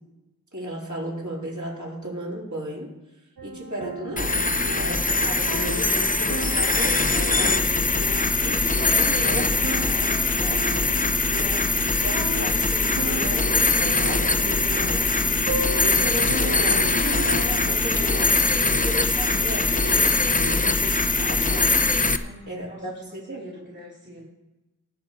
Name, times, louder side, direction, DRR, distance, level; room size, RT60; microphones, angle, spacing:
voice 1, 0.5-2.9 3.4-4.5 4.8-7.0 7.3-7.8 8.1-10.9 11.3-21.7 22.5-23.4, equal, 55° right, -4 dB, 3.9 m, -35 dB
sound 1, 3.4-18.6, right 2 dB, 80° right, 1.3 m, -36 dB
sound 2, 4.2-22.2, left 3 dB, 25° left, 0.7 m, -22 dB
Bicycle, 16.0-22.1, left 3 dB, 55° left, 1.3 m, -44 dB
voice 2, 22.2-24.2, equal, 30° right, -4 dB, 2.9 m, -43 dB
19.0 x 6.8 x 4.2 m, 1.0 s
wide cardioid pair, 45°, 36 cm